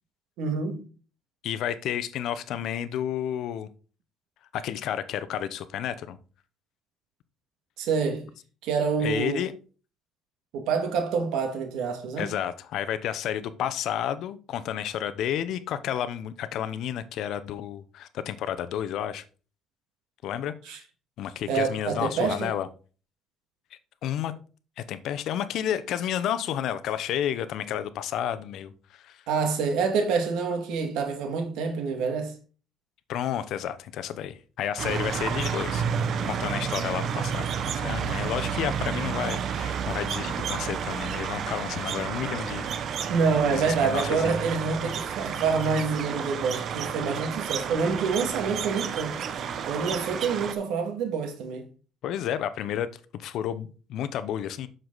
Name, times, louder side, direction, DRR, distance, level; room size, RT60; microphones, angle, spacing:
voice 1, 0.4-0.8 7.8-8.3 8.6-9.4 10.5-12.3 20.7-20.8 21.5-22.5 29.3-32.3 43.1-49.2 49.6-51.7, right 5 dB, 85° right, 2.1 m, -27 dB
voice 2, 1.4-3.7 4.5-6.2 9.0-9.5 12.2-19.2 20.2-20.8 21.2-22.7 24.0-24.3 24.8-29.2 33.1-35.9 36.2-42.7 43.0-43.1 43.5-44.4 52.0-54.7, left 10 dB, 70° left, 0.8 m, -31 dB
sound 1, 34.8-50.5, right 7 dB, 55° right, 1.0 m, -31 dB
7.7 x 6.8 x 4.0 m
cardioid pair, 110°, 0 cm